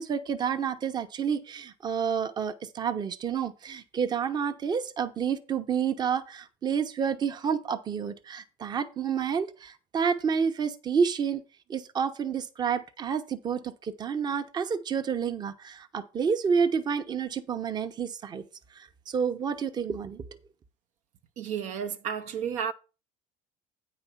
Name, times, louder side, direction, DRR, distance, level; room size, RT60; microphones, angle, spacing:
voice 1, 0.0-11.4 11.7-18.4 19.1-20.2, right 6 dB, 30° right, 0.9 m, -29 dB
voice 2, 21.4-22.7, right 8 dB, 60° right, 0.8 m, -32 dB
9.1 x 5.1 x 5.7 m
cardioid pair, 130°, 14 cm